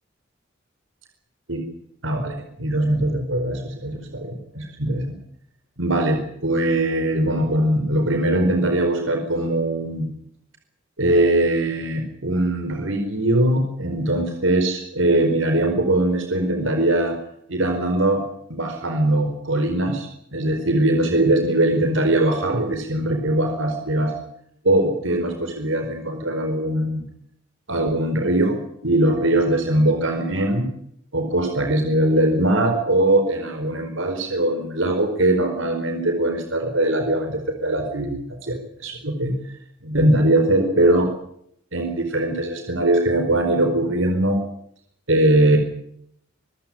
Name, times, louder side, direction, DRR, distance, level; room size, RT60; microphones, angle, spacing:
voice 1, 2.0-2.3 2.6-5.1 5.8-10.1 11.0-17.2 17.5-18.2 18.5-24.1 24.6-27.0 27.7-30.7 31.1-39.3 39.8-41.1 41.7-44.4 45.1-45.6, right 1 dB, 75° right, 5 dB, 4.7 m, -21 dB
26.5 x 15.5 x 9.1 m, 0.71 s
head